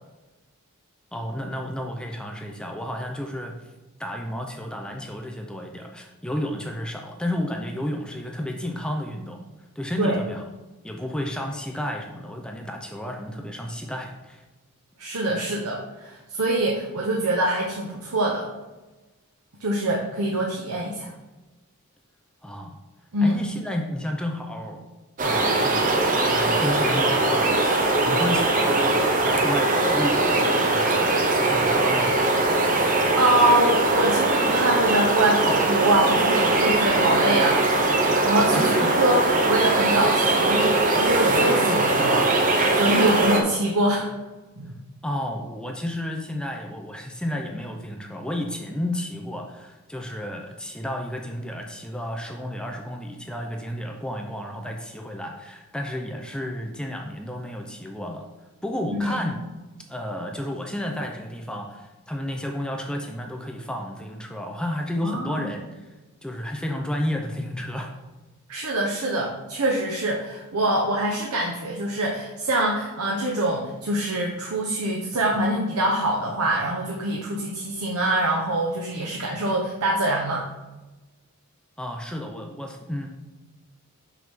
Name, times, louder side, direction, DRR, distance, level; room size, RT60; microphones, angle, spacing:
voice 1, 1.1-3.6 4.0-9.4 9.8-10.4 10.8-14.4 22.4-22.8 23.2-24.9 25.2-32.1 38.5-38.9 45.0-58.3 58.6-59.4 59.9-65.6 66.2-67.9 81.8-83.1, left 1 dB, 5° left, 2 dB, 0.4 m, -32 dB
voice 2, 15.0-18.5 19.6-21.1 23.1-23.4 32.7-37.7 38.3-44.1 44.6-44.8 59.0-59.2 65.0-65.5 68.5-80.5, right 1 dB, 85° right, -2 dB, 0.9 m, -24 dB
sound 1, 25.2-43.4, right 2 dB, 35° right, 0.8 m, -21 dB
5.9 x 5.8 x 3.6 m, 1.2 s
head